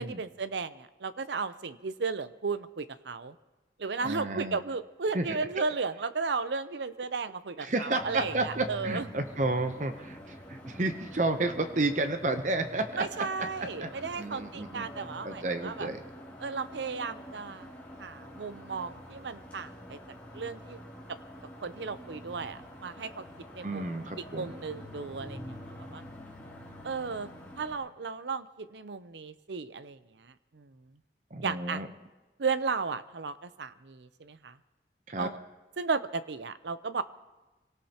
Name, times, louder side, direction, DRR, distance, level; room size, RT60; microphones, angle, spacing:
voice 1, 0.0-3.4 3.8-9.1 13.0-15.9 16.4-17.7 18.0-20.0 20.3-20.8 21.6-23.2 23.5-23.8 24.2-26.0 26.8-30.7 31.4-31.8 32.4-34.5 35.2-35.4 35.8-37.0, right 4 dB, 80° right, 13 dB, 0.6 m, -35 dB
voice 2, 4.0-4.6 5.1-5.4 7.6-13.3 13.8-14.9 15.2-16.0 23.6-24.5 31.3-31.9 35.1-35.3, right 2 dB, 45° right, 7 dB, 0.8 m, -31 dB
sound 1, 8.0-27.7, equal, 10° left, 2.9 m, -46 dB
26.0 x 18.0 x 2.9 m, 1.1 s
head